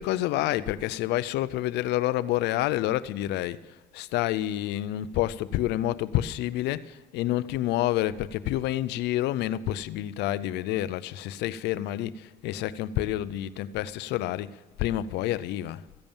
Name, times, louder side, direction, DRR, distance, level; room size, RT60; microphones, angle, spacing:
voice 1, 0.0-15.8, left 14 dB, 85° left, 0.6 m, -28 dB
14.5 x 10.5 x 7.1 m
cardioid pair, 110°, 17 cm